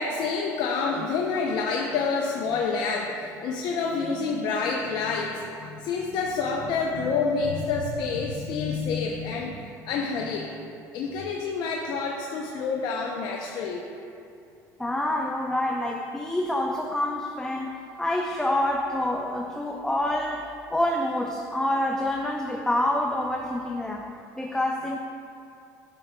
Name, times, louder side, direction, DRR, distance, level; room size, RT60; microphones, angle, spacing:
voice 1, 0.0-10.7 10.9-13.8, left 4 dB, 65° left, 0 dB, 0.6 m, -28 dB
voice 2, 14.8-24.1 24.4-25.0, left 1 dB, 5° left, 1 dB, 0.5 m, -27 dB
11.0 x 6.8 x 2.2 m, 2.6 s
supercardioid pair, 100°, 8 cm